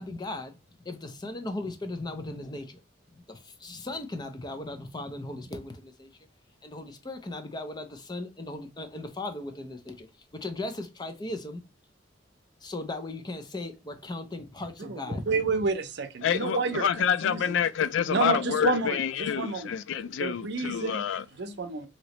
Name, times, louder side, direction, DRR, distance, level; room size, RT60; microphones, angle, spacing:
voice 1, 0.0-2.8 3.1-6.1 6.6-10.1 10.3-11.6 12.6-15.3, left 2 dB, 25° left, 0.5 m, -37 dB
voice 2, 14.8-17.6 18.1-19.7 20.2-21.0 21.4-21.9, right 4 dB, 65° right, 0.6 m, -30 dB
voice 3, 16.2-21.6, left 8 dB, 80° left, 0.3 m, -28 dB
3.0 x 2.8 x 2.9 m
head